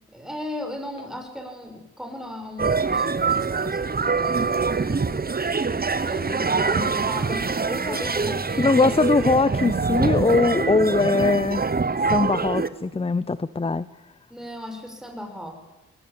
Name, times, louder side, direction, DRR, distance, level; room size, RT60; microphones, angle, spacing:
voice 1, 0.0-5.4 6.1-9.0 9.4-9.7 14.3-15.6, left 1 dB, ahead, 3 dB, 6.9 m, -36 dB
sound 1, 2.6-12.7, right 4 dB, 30° right, 1.1 m, -24 dB
voice 2, 8.6-11.7 12.1-13.9, left 3 dB, 20° left, 16 dB, 0.7 m, -21 dB
21.5 x 19.5 x 8.9 m, 1.0 s
cardioid pair, 55°, 29 cm